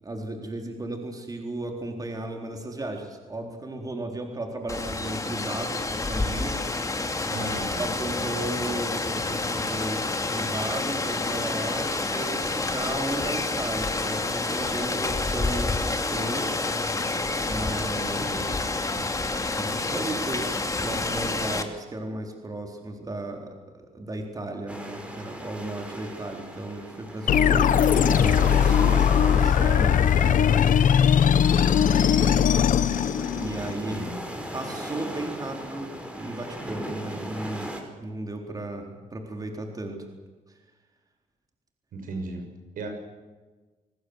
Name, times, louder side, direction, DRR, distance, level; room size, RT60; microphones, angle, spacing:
voice 1, 0.0-6.8 7.3-7.5 7.8-10.0 10.3-16.7 17.4-18.9 19.5-20.5 20.8-23.5 23.7-30.6 31.7-32.5 33.3-34.1 34.5-37.7 38.0-40.1 40.5-40.6, right 2 dB, 25° right, 3 dB, 4.0 m, -35 dB
Rain, 4.7-21.6, left 3 dB, 25° left, 2.6 m, -28 dB
voice 2, 7.3-7.8 18.9-19.2 32.4-32.7 33.9-34.1 41.9-42.5 42.8-42.9, right 3 dB, 80° right, 5 dB, 6.6 m, -36 dB
sound 1, 24.7-37.8, equal, 10° right, 5.2 m, -37 dB
sound 2, 27.3-33.7, left 8 dB, 70° left, 1.2 m, -20 dB
28.0 x 20.0 x 8.0 m, 1.3 s
cardioid pair, 105°, 14 cm